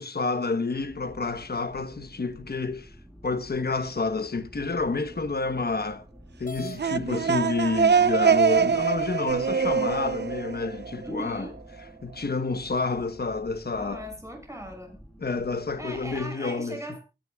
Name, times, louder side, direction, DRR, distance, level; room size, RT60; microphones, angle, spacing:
voice 1, 0.0-2.9 3.2-6.0 6.4-11.5 12.0-14.0 15.2-16.8, left 3 dB, 70° left, 1.1 m, -29 dB
sound 1, 0.7-16.3, equal, ahead, 7.3 m, -50 dB
sound 2, 6.4-6.8 7.8-7.9 8.5-8.6 9.3-10.0, left 3 dB, 50° left, 1.6 m, -42 dB
sound 3, 6.6-11.3, right 6 dB, 90° right, 0.7 m, -24 dB
voice 2, 11.0-11.6 13.7-15.0 15.8-17.0, right 1 dB, 15° right, 6.6 m, -38 dB
23.5 x 10.5 x 2.4 m
wide cardioid pair, 50°, 17 cm